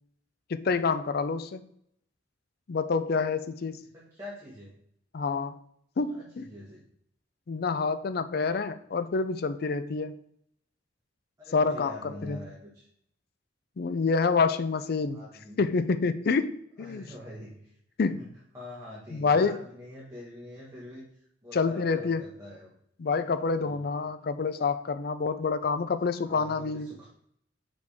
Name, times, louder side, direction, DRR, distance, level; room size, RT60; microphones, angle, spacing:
voice 1, 0.5-1.6 2.7-3.8 5.1-5.6 6.0-6.5 7.5-10.2 11.5-12.4 13.8-15.2 15.6-17.1 18.0-18.2 19.1-19.6 21.5-22.2 23.0-26.9, left 4 dB, 55° left, 11 dB, 0.4 m, -27 dB
voice 2, 3.9-4.8 6.1-6.8 11.4-12.9 15.1-15.7 16.8-17.7 18.2-18.3 18.5-22.7 23.6-23.9 26.2-27.1, left 1 dB, 15° right, -7 dB, 1.4 m, -45 dB
6.3 x 5.1 x 3.5 m, 0.70 s
head